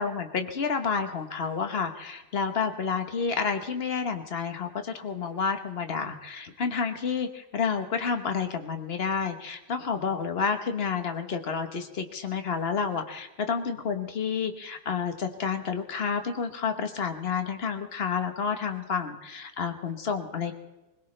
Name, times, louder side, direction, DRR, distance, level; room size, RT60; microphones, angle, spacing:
voice 1, 0.0-20.5, left 6 dB, 40° left, 7 dB, 1.1 m, -30 dB
21.5 x 20.5 x 3.3 m, 0.99 s
omnidirectional pair, 2.0 m